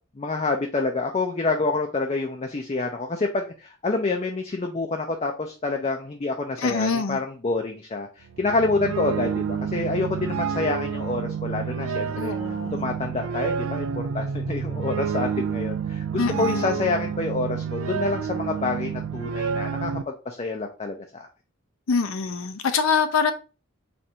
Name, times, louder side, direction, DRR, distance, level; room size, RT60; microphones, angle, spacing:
voice 1, 0.2-12.3 12.7-13.9 14.1-21.3, left 3 dB, 30° left, 0.4 m, -27 dB
voice 2, 6.6-7.2 12.1-12.9 16.2-16.8 21.9-23.3, left 5 dB, 80° left, 0.6 m, -25 dB
sound 1, 8.2-20.0, right 6 dB, 80° right, 0.4 m, -29 dB
4.2 x 2.6 x 4.4 m
head